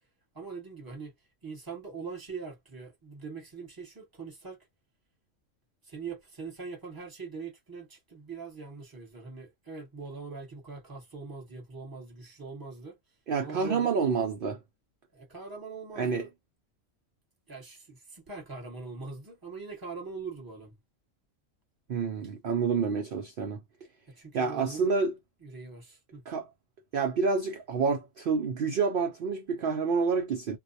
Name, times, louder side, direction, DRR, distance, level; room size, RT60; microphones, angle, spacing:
voice 1, 0.3-1.1 1.4-4.6 5.8-13.0 13.4-14.0 15.1-16.3 17.5-20.8 24.2-24.9 25.4-26.2, right 4 dB, 20° right, 1.1 m, -42 dB
voice 2, 13.3-14.6 16.0-16.2 21.9-23.6 24.3-25.1 26.3-26.5 26.9-30.6, right 5 dB, 60° right, 0.5 m, -28 dB
2.2 x 2.1 x 2.6 m
omnidirectional pair, 1.3 m